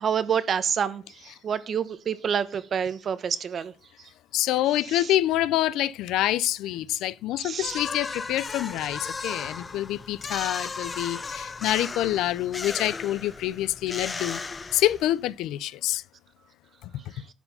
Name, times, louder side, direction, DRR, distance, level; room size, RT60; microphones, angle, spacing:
voice 1, 0.0-3.7 4.9-5.1 7.4-7.8, right 7 dB, 40° right, 0.8 m, -28 dB
voice 2, 4.3-14.4 14.7-16.0 16.8-17.0, left 14 dB, 85° left, 0.4 m, -26 dB
sound 1, 7.6-15.3, left 4 dB, 20° left, 0.4 m, -36 dB
11.0 x 4.4 x 5.4 m
cardioid pair, 150°, 0 cm